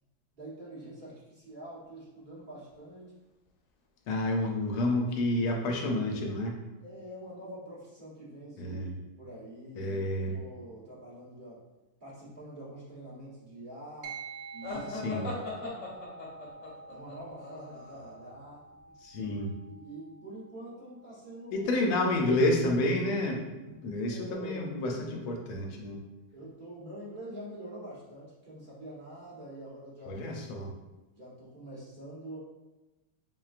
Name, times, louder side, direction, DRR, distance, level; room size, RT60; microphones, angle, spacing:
voice 1, 0.3-3.1 6.8-8.9 9.2-10.0 10.3-11.6 12.0-14.1 14.5-15.9 16.9-18.6 19.1-19.4 19.7-21.7 24.1-24.7 26.3-30.3 31.1-32.4, right 1 dB, 40° right, -8 dB, 0.7 m, -45 dB
voice 2, 4.1-6.6 8.6-9.0 9.8-10.4 15.0-15.3 19.0-19.5 21.5-26.0 30.1-30.7, left 1 dB, 85° left, 1 dB, 1.5 m, -29 dB
sound 1, 14.0-23.7, right 4 dB, 75° right, 1.1 m, -49 dB
sound 2, 14.6-18.3, left 2 dB, 50° left, 1.0 m, -40 dB
6.0 x 2.2 x 2.4 m, 1.1 s
omnidirectional pair, 2.3 m